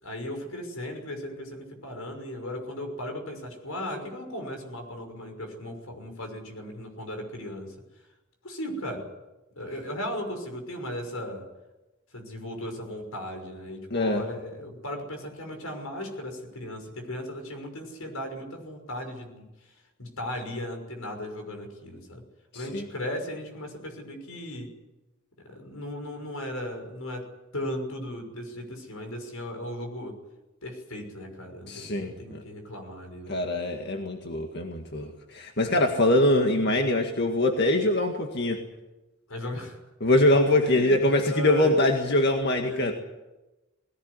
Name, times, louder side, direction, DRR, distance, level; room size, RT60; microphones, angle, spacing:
voice 1, 0.0-7.8 8.4-9.1 9.6-11.5 12.1-22.2 22.5-24.7 25.4-27.3 27.5-30.1 30.6-33.4 39.3-39.8 40.6-41.0 41.2-41.8 42.6-42.9, left 1 dB, 90° left, 5 dB, 6.0 m, -36 dB
voice 2, 13.9-14.3 22.5-22.9 31.7-32.4 33.3-38.6 40.0-42.9, left 1 dB, 50° left, 3 dB, 1.9 m, -23 dB
20.5 x 18.0 x 9.8 m, 1.1 s
head